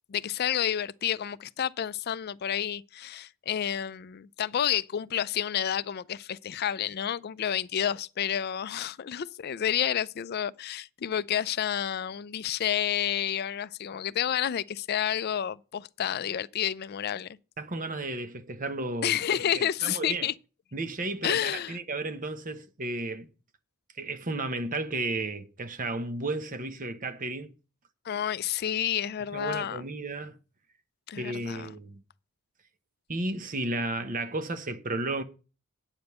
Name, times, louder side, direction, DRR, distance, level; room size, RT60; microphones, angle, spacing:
voice 1, 0.1-17.4 19.0-20.3 21.2-21.8 28.1-29.8 31.1-31.7, left 9 dB, 50° left, 0.4 m, -30 dB
voice 2, 17.6-20.3 20.7-23.3 24.0-27.5 29.3-30.4 31.1-32.0 33.1-35.2, right 2 dB, 40° right, 1.0 m, -33 dB
9.0 x 5.2 x 7.9 m
head